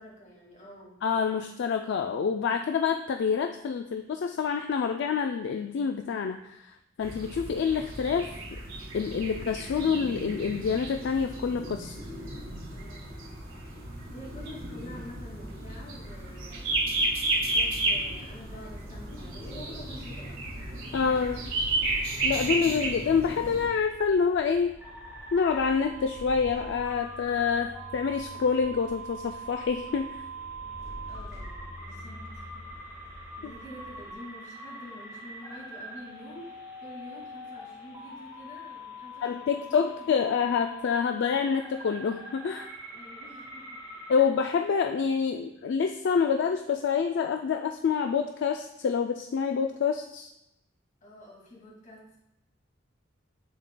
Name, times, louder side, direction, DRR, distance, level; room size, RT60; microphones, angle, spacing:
voice 1, 0.0-1.0 12.7-13.2 14.1-16.8 17.3-20.4 21.0-21.4 31.1-32.6 33.4-40.3 42.9-43.8 51.0-52.2, equal, 40° left, -4 dB, 2.1 m, -47 dB
voice 2, 1.0-8.6 8.9-12.0 20.9-21.4 22.2-24.8 25.3-30.2 39.2-42.7 44.1-50.3, left 6 dB, 65° left, 6 dB, 0.3 m, -27 dB
sound 1, 7.0-23.7, right 2 dB, 85° right, 1.5 m, -33 dB
sound 2, 17.9-34.1, left 1 dB, 15° left, 0.9 m, -47 dB
sound 3, 24.8-44.2, right 1 dB, 10° right, 1.3 m, -44 dB
11.0 x 4.1 x 2.2 m, 0.85 s
head